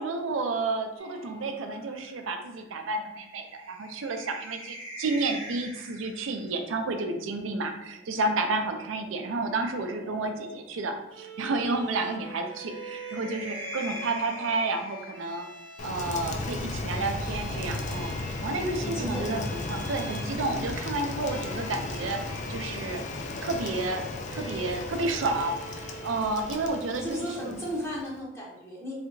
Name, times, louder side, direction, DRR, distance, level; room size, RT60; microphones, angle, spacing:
voice 1, 0.0-15.5 15.8-23.0 23.4-24.0 24.3-27.5, right 3 dB, 80° right, 5 dB, 0.4 m, -31 dB
sound 1, 1.0-6.5 7.9-10.9 12.2-15.7 17.0-19.9, equal, 70° left, 1.5 m, -45 dB
Bowed string instrument, 11.1-26.9, right 2 dB, 25° right, 0.7 m, -45 dB
Rain, 15.8-28.2, left 2 dB, 40° left, 0.3 m, -35 dB
voice 2, 18.8-19.6 27.0-29.0, equal, 15° left, -4 dB, 0.7 m, -35 dB
3.3 x 2.8 x 2.6 m, 0.94 s
head